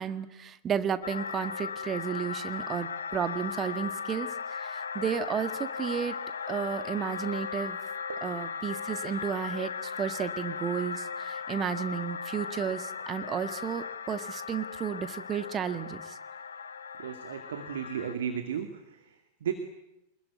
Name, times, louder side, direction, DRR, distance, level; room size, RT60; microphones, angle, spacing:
voice 1, 0.0-6.2 6.5-7.8 8.2-16.2, right 8 dB, 25° right, 11 dB, 1.7 m, -33 dB
sound 1, 1.0-18.1, left 6 dB, 70° left, 1.2 m, -37 dB
voice 2, 17.0-19.5, right 8 dB, 60° right, 7 dB, 2.4 m, -35 dB
26.0 x 21.0 x 9.5 m, 0.92 s
figure-of-eight pair, 90°, 0 cm